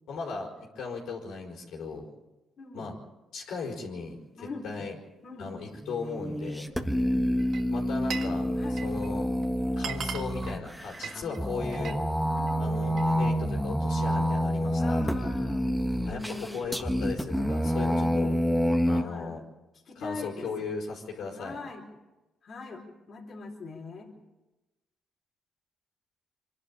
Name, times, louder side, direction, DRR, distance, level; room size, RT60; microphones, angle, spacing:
voice 1, 0.1-2.1 2.7-2.9 3.3-4.2 4.6-4.9 5.4-6.7 7.7-8.5 8.8-9.3 9.8-12.0 12.6-15.3 16.1-18.3 18.8-19.4 19.9-21.6, left 4 dB, 80° left, -1 dB, 4.8 m, -37 dB
voice 2, 2.6-2.9 4.4-4.9 5.2-5.5 7.0-7.3 8.6-8.9 11.1-11.3 12.3-12.8 14.8-15.7 16.1-17.0 17.6-18.4 18.9-19.4 19.9-20.5 21.3-21.9 22.4-24.1, left 3 dB, 50° left, -1 dB, 4.2 m, -42 dB
sound 1, 5.7-19.0, equal, ahead, 1.5 m, -28 dB
Glass, 7.4-8.4 8.6-9.1 9.4-9.5 9.7-12.0 12.4-13.1, right 7 dB, 65° right, 1.6 m, -39 dB
25.0 x 11.5 x 8.8 m, 1.1 s
cardioid pair, 90°, 0 cm